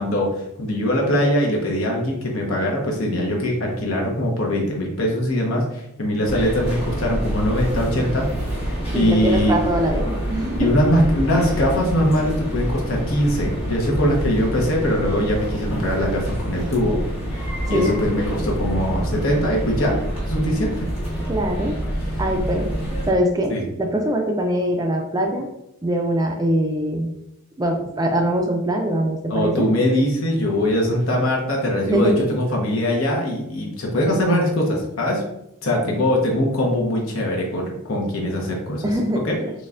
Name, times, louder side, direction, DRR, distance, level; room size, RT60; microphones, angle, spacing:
voice 1, 0.0-8.3 8.9-9.6 10.6-17.0 17.3-20.0 20.3-20.9 22.1-22.2 23.5-23.6 29.3-35.2 35.6-38.9 39.2-39.4, left 1 dB, 75° left, -1 dB, 1.1 m, -22 dB
sound 1, 6.2-23.1, right 1 dB, 30° left, 1.0 m, -27 dB
voice 2, 8.9-10.7 17.7-18.0 21.3-21.8 22.2-25.5 25.8-27.1 27.6-29.8 31.8-32.2 38.8-39.5, right 1 dB, 15° right, 3 dB, 0.4 m, -23 dB
4.2 x 3.2 x 2.5 m, 0.83 s
head